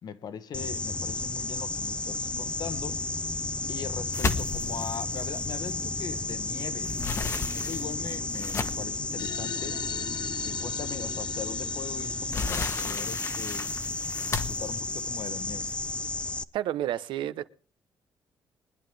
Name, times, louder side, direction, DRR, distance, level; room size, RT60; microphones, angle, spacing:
voice 1, 0.0-3.0 3.7-7.0 7.5-9.8 10.4-13.7 14.3-15.7, left 7 dB, 55° left, 1.2 m, -40 dB
sound 1, 0.5-16.4, left 2 dB, 15° left, 0.6 m, -33 dB
sound 2, 4.1-6.3 6.6-9.0 9.7-9.8 10.2-10.3 11.7-16.0, left 4 dB, 35° left, 1.2 m, -33 dB
sound 3, 9.2-14.1, left 11 dB, 75° left, 0.6 m, -42 dB
voice 2, 16.5-17.5, right 12 dB, 85° right, 0.9 m, -30 dB
23.0 x 10.5 x 3.5 m
cardioid pair, 145°, 8 cm